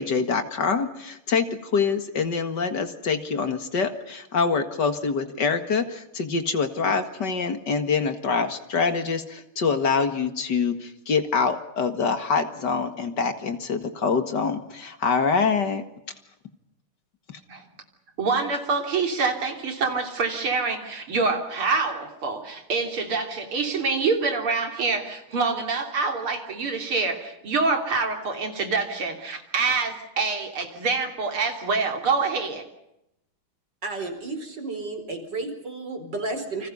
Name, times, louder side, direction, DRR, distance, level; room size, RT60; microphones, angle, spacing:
voice 1, 0.0-15.8, left 5 dB, 55° left, 9 dB, 2.4 m, -25 dB
voice 2, 18.2-32.7, right 4 dB, 90° right, 5 dB, 4.1 m, -26 dB
voice 3, 33.8-36.7, right 3 dB, 55° right, 6 dB, 5.0 m, -32 dB
29.5 x 26.0 x 5.5 m, 0.84 s
omnidirectional pair, 2.3 m